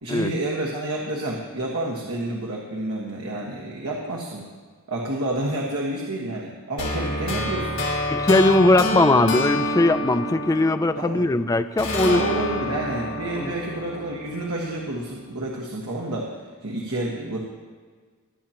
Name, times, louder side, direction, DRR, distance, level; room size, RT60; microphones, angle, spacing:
voice 1, 0.0-4.5 4.9-7.8 11.0-11.3 12.0-16.3 16.6-17.4, right 2 dB, 80° right, -2 dB, 1.4 m, -29 dB
sound 1, 6.8-11.3 11.8-14.9, left 1 dB, 60° left, 2.1 m, -28 dB
voice 2, 8.1-12.2 13.4-13.5, left 2 dB, 15° left, 10 dB, 0.3 m, -20 dB
21.5 x 8.9 x 2.9 m, 1.5 s
head